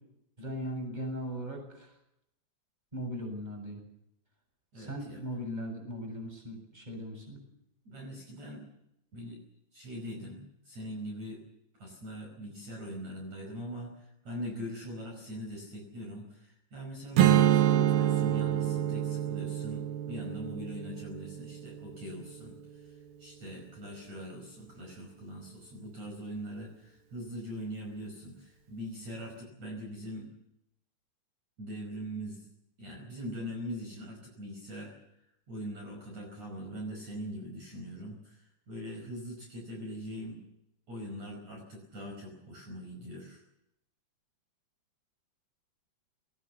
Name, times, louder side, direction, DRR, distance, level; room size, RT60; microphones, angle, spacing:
voice 1, 0.4-1.9 2.9-3.8 4.7-7.4, equal, 10° right, 3 dB, 7.3 m, -38 dB
voice 2, 4.7-5.2 7.8-8.7 9.1-9.4 9.7-11.4 11.8-30.3 31.6-32.5 32.8-40.4 40.9-43.4, equal, 40° right, 1 dB, 6.1 m, -42 dB
Strum, 17.2-22.5, right 11 dB, 65° right, 2.8 m, -27 dB
22.0 x 19.0 x 7.0 m, 0.79 s
omnidirectional pair, 5.1 m